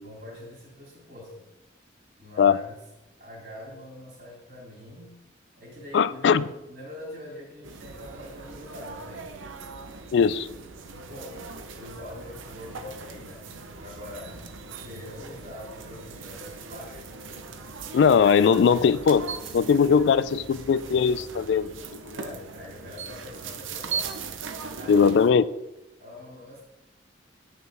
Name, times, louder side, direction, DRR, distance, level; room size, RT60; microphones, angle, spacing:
voice 1, 0.0-1.5 2.2-2.7 3.2-5.2 5.6-9.3 10.9-13.5 13.8-14.4 14.8-17.1 22.1-24.1 24.7-25.1 26.0-26.6, left 1 dB, 55° right, -6 dB, 3.2 m, -43 dB
voice 2, 5.9-6.4 10.1-10.5 17.9-19.2 19.5-21.7 22.1-22.2 24.9-25.4, left 6 dB, 65° left, 17 dB, 0.3 m, -20 dB
sound 1, 7.6-25.3, right 5 dB, 90° right, 0.7 m, -39 dB
8.8 x 6.5 x 3.4 m, 0.98 s
head